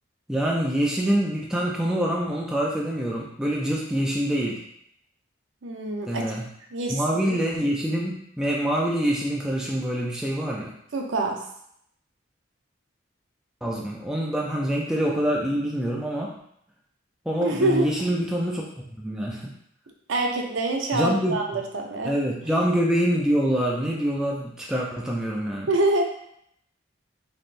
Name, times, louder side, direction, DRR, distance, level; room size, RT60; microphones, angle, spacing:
voice 1, 0.3-4.6 6.1-6.5 6.9-10.7 13.6-16.4 17.3-18.7 19.0-19.4 20.9-21.4 22.0-25.7, right 1 dB, 5° right, -3 dB, 0.3 m, -25 dB
voice 2, 5.6-6.3 6.7-7.4 10.9-11.4 17.4-17.9 20.1-22.1 25.7-26.0, right 2 dB, 80° right, 2 dB, 0.6 m, -25 dB
3.9 x 3.5 x 2.5 m, 0.72 s
head